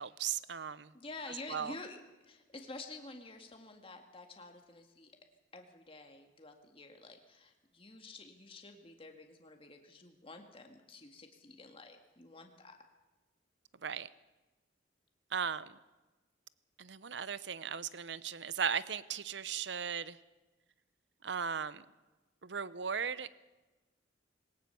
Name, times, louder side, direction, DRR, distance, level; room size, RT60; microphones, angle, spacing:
voice 1, 0.0-0.9 1.5-1.7 13.8-14.1 15.3-15.7 16.8-20.2 21.2-21.8 22.4-23.4, right 7 dB, 65° right, 17 dB, 0.8 m, -37 dB
voice 2, 0.9-2.0 2.2-5.1 5.5-12.8, left 2 dB, 30° left, 4 dB, 2.0 m, -50 dB
20.5 x 18.5 x 7.0 m, 1.1 s
head